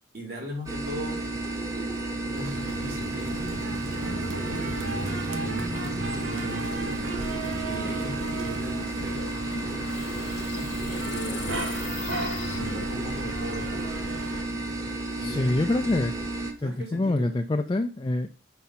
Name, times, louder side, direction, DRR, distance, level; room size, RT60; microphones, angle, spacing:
voice 1, 0.1-1.2 2.2-3.5 3.9-9.2 10.5-13.9 15.2-15.9 16.6-17.3, equal, 55° right, 0 dB, 2.3 m, -39 dB
sound 1, 0.7-16.5, right 2 dB, 15° right, 1.1 m, -32 dB
sound 2, 2.4-14.4, right 2 dB, 80° right, 1.0 m, -36 dB
sound 3, 9.1-13.3, left 6 dB, 80° left, 0.7 m, -40 dB
voice 2, 15.2-16.1 16.6-18.3, left 2 dB, 25° left, 5 dB, 0.3 m, -26 dB
5.8 x 5.2 x 5.5 m, 0.35 s
head